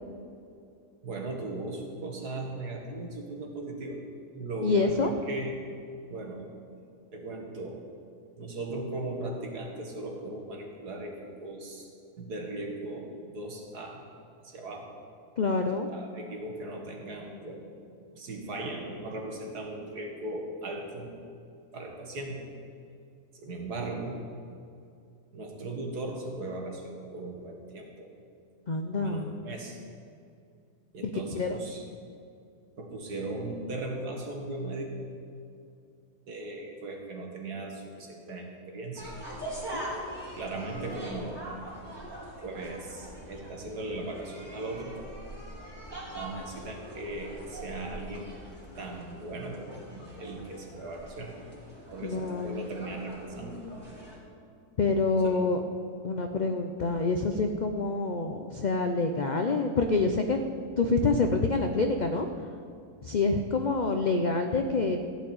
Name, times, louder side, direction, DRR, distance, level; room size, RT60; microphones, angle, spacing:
voice 1, 1.0-4.0 4.3-5.6 6.1-6.5 7.1-7.8 8.4-11.9 12.2-14.0 14.4-14.9 15.9-17.9 18.1-21.1 21.7-22.5 23.3-24.2 25.3-28.1 28.9-29.8 30.9-31.8 32.8-35.1 36.3-39.1 40.3-41.5 42.4-44.9 45.9-48.3 48.8-49.9 50.2-51.4 51.9-53.6 55.1-55.5, right 2 dB, 80° right, 1 dB, 2.2 m, -38 dB
voice 2, 4.6-5.1 15.4-15.9 28.7-29.4 31.0-31.6 39.7-40.2 52.0-52.6 54.8-55.6 56.0-60.4 60.8-62.5 63.0-65.0, left 3 dB, 85° left, 5 dB, 0.4 m, -27 dB
sound 1, 38.9-54.2, right 1 dB, 15° right, 2.9 m, -43 dB
15.0 x 5.2 x 8.9 m, 2.5 s
omnidirectional pair, 1.7 m